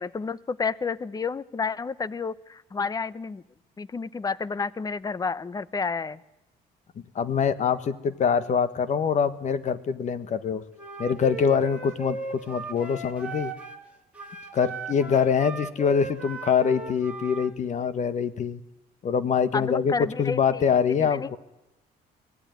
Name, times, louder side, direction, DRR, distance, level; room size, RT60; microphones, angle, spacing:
voice 1, 0.0-3.4 3.8-6.2 19.5-20.6 21.0-21.4, left 5 dB, 20° left, 19 dB, 0.8 m, -30 dB
voice 2, 7.1-10.6 11.0-12.2 12.5-13.5 14.5-18.6 19.0-21.4, left 6 dB, 45° left, 14 dB, 1.5 m, -24 dB
Wind instrument woodwind instrument, 10.8-13.9 14.1-17.5, right 4 dB, 5° right, 3.4 m, -37 dB
23.5 x 17.5 x 9.6 m, 0.94 s
cardioid pair, 110°, 17 cm